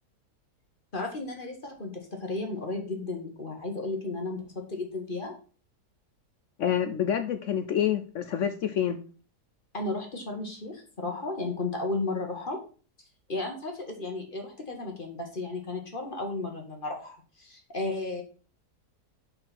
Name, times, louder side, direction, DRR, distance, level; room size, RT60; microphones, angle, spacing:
voice 1, 0.9-4.4 4.7-5.3 9.7-12.6 13.3-18.2, left 2 dB, 35° left, 2 dB, 1.5 m, -34 dB
voice 2, 6.6-9.0, left 9 dB, 65° left, 9 dB, 0.8 m, -27 dB
6.2 x 4.4 x 5.9 m, 0.38 s
omnidirectional pair, 1.7 m